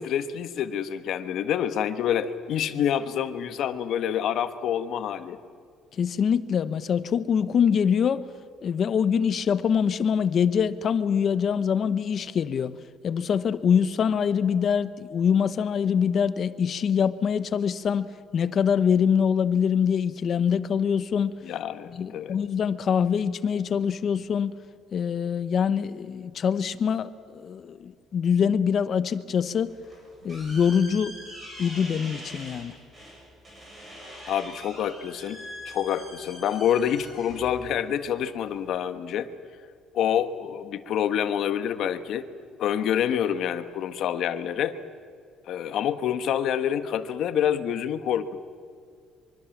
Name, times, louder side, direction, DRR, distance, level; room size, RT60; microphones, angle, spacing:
voice 1, 0.0-5.4 21.4-22.4 34.3-39.3 39.9-42.3 42.6-44.8 45.5-48.4, left 9 dB, 55° left, 10 dB, 1.4 m, -27 dB
voice 2, 6.0-8.3 8.6-12.8 13.0-18.1 18.3-21.3 21.9-24.5 24.9-29.7 30.2-31.2 31.6-32.8, left 7 dB, 40° left, 14 dB, 0.9 m, -24 dB
sound 1, 29.7-38.8, equal, 20° right, 7.5 m, -44 dB
24.0 x 24.0 x 7.3 m, 2.2 s
cardioid pair, 155°, 0 cm